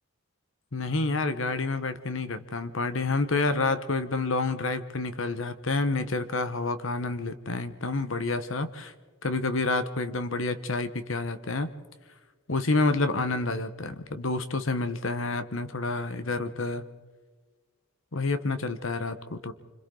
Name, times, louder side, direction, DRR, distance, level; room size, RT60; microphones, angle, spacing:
voice 1, 0.7-8.9 9.2-11.7 12.5-16.8 18.1-19.5, left 3 dB, 65° left, 11 dB, 1.2 m, -29 dB
27.0 x 26.0 x 3.9 m, 1.4 s
head